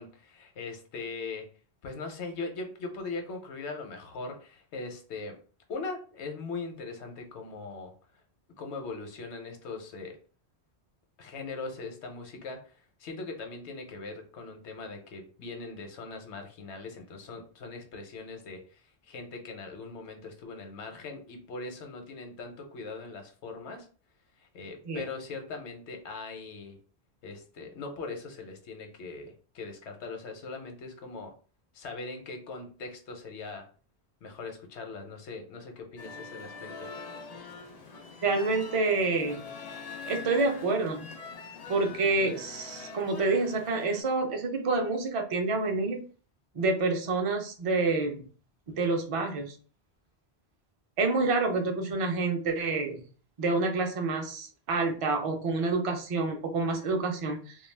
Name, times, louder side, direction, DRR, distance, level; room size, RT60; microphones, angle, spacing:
voice 1, 0.0-1.5 1.8-5.4 5.7-7.9 8.6-10.2 11.2-12.6 13.0-18.8 19.1-23.9 24.5-26.8 27.2-31.3 31.7-33.6 34.2-36.9, left 3 dB, 85° left, 4 dB, 1.0 m, -40 dB
sound 1, 36.0-44.0, left 4 dB, 55° left, 0.4 m, -44 dB
voice 2, 38.2-39.4 40.0-41.1 41.7-46.0 46.5-48.3 48.7-49.6 51.0-53.1 53.4-57.6, right 3 dB, 45° right, 4 dB, 0.4 m, -28 dB
2.3 x 2.3 x 3.2 m, 0.39 s
omnidirectional pair, 1.1 m